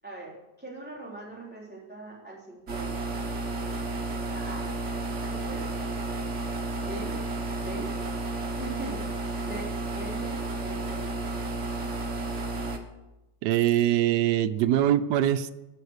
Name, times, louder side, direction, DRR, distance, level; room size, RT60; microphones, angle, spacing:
voice 1, 0.0-3.1 4.3-4.7 5.3-5.7 6.8-7.2 7.5-7.9 8.6-11.1, right 2 dB, 5° right, -5 dB, 3.9 m, -41 dB
sound 1, 2.7-12.8, right 2 dB, 45° right, 1.6 m, -32 dB
voice 2, 13.4-15.5, right 12 dB, 80° right, 10 dB, 1.3 m, -23 dB
15.0 x 9.5 x 6.6 m, 1.0 s
omnidirectional pair, 1.9 m